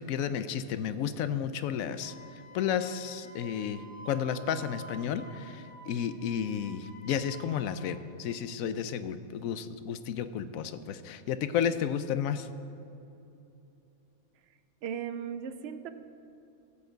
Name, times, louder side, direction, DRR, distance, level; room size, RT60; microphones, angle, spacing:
voice 1, 0.0-2.1 2.5-12.5, left 8 dB, 75° left, 12 dB, 1.0 m, -32 dB
Wind instrument woodwind instrument, 2.0-7.7, right 3 dB, 20° right, 1.3 m, -50 dB
voice 2, 14.8-15.9, right 8 dB, 60° right, 11 dB, 0.7 m, -37 dB
14.5 x 8.6 x 3.9 m, 2.8 s
omnidirectional pair, 1.5 m